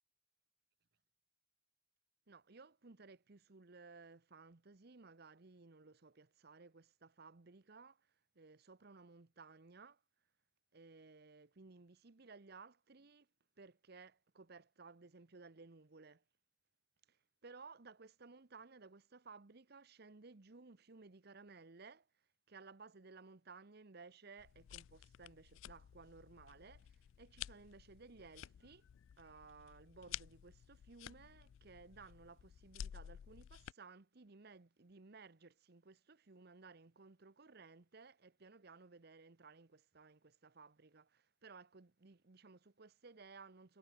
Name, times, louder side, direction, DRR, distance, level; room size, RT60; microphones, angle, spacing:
voice 1, 2.3-10.0 10.7-13.3 13.6-16.2 17.1-28.9 29.2-43.8, right 4 dB, 55° right, 1.0 m, -58 dB
sound 1, 24.4-33.7, left 11 dB, 85° left, 0.3 m, -53 dB
head